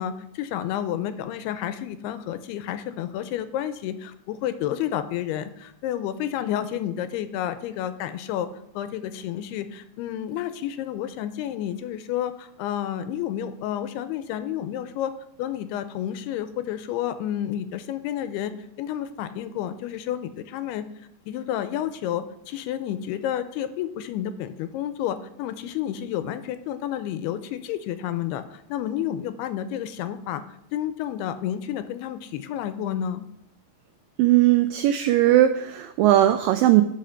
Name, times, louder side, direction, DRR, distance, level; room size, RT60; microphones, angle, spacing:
voice 1, 0.0-8.5 8.8-15.1 15.4-20.9 21.3-30.4 30.7-33.2, left 11 dB, 90° left, 11 dB, 2.7 m, -30 dB
voice 2, 34.2-36.8, right 13 dB, 90° right, 9 dB, 2.0 m, -18 dB
11.5 x 5.0 x 5.7 m, 0.79 s
omnidirectional pair, 4.6 m